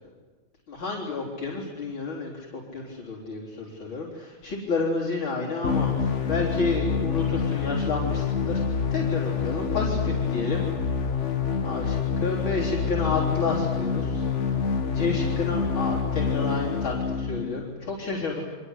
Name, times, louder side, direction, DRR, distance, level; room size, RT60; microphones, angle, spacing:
voice 1, 0.7-10.6 11.6-14.3 14.9-18.4, left 3 dB, 85° left, -4 dB, 4.6 m, -30 dB
sound 1, 5.6-17.6, left 6 dB, 40° left, 1.5 m, -27 dB
29.0 x 24.5 x 8.2 m, 1.4 s
omnidirectional pair, 2.2 m